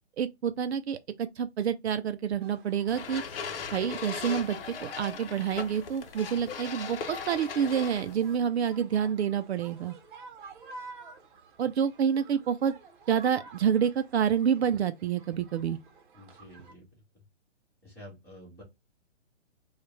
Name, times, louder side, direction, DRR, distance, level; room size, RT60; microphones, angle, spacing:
voice 1, 0.2-3.2 3.7-9.9 11.6-12.7 13.1-15.8, right 8 dB, 65° right, 0.5 m, -28 dB
sound 1, 2.4-16.7, right 4 dB, 45° right, 1.0 m, -52 dB
sound 2, 2.9-8.4, left 6 dB, 55° left, 0.8 m, -39 dB
voice 2, 16.1-16.9 17.1-17.2 17.8-18.6, left 1 dB, 5° left, 1.7 m, -49 dB
4.9 x 2.4 x 3.2 m
hypercardioid pair, 155°, 35 cm